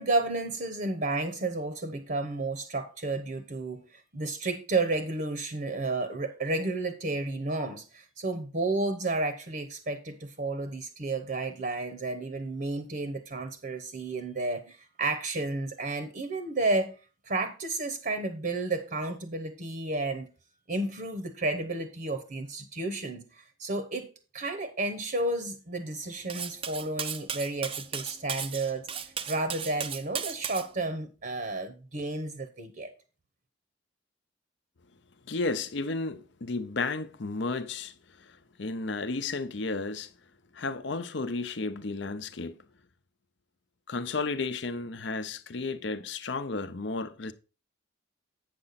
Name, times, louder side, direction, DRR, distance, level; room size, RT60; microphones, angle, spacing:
voice 1, 0.0-17.0 17.2-20.3 20.7-24.1 24.3-32.9, right 2 dB, 50° right, 0.9 m, -32 dB
Cutlery silverware, 26.3-30.7, right 7 dB, 30° right, 0.5 m, -35 dB
voice 2, 35.3-37.9 38.2-40.1 40.5-42.6 43.9-47.3, left 3 dB, 60° left, 0.7 m, -33 dB
8.7 x 6.8 x 4.1 m
head